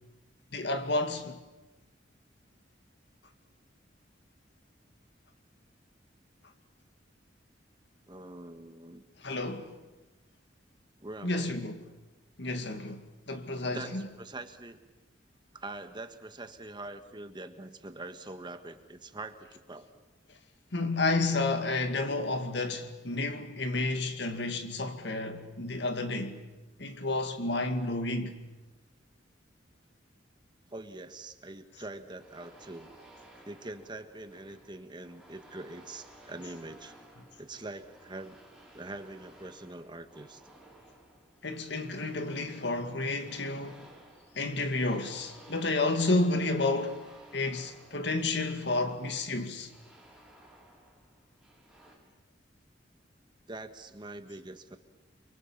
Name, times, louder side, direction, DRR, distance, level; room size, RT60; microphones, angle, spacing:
voice 1, 0.5-1.4 9.2-9.7 11.2-11.8 12.4-14.1 20.7-26.4 26.8-28.4 41.4-43.8 44.3-47.0 47.3-49.7, left 2 dB, 65° left, 2.2 m, -31 dB
voice 2, 8.1-9.0 11.0-11.6 13.6-14.8 15.5-19.9 30.7-32.9 33.4-36.9 37.4-38.4 38.7-40.4 53.5-54.8, right 2 dB, 25° right, 1.5 m, -44 dB
sound 1, 32.2-52.0, right 1 dB, ahead, 6.7 m, -56 dB
30.0 x 23.5 x 7.4 m
head